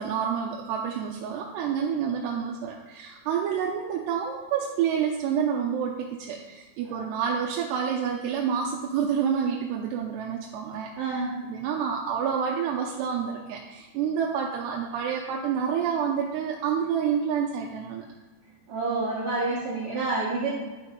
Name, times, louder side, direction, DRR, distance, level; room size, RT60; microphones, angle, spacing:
voice 1, 0.0-10.9 11.4-18.1, right 7 dB, 85° right, -1 dB, 2.8 m, -28 dB
voice 2, 11.0-11.4 18.7-20.5, right 3 dB, 60° right, -8 dB, 2.9 m, -28 dB
12.0 x 4.4 x 5.4 m, 1.2 s
omnidirectional pair, 4.8 m